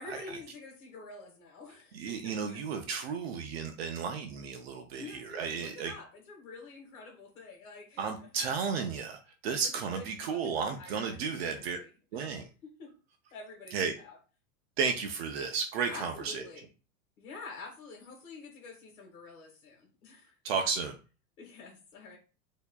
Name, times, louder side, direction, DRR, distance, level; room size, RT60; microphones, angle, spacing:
voice 1, 0.0-2.6 4.9-8.3 9.5-12.9 13.3-14.2 15.9-16.7 17.2-20.4 21.4-22.2, left 3 dB, 75° left, 0 dB, 1.7 m, -48 dB
voice 2, 1.9-5.9 8.0-11.8 12.1-12.5 13.7-13.9 14.8-16.4 20.4-20.9, right 5 dB, 50° right, 6 dB, 0.4 m, -33 dB
4.5 x 2.7 x 2.2 m, 0.34 s
supercardioid pair, 170°, 42 cm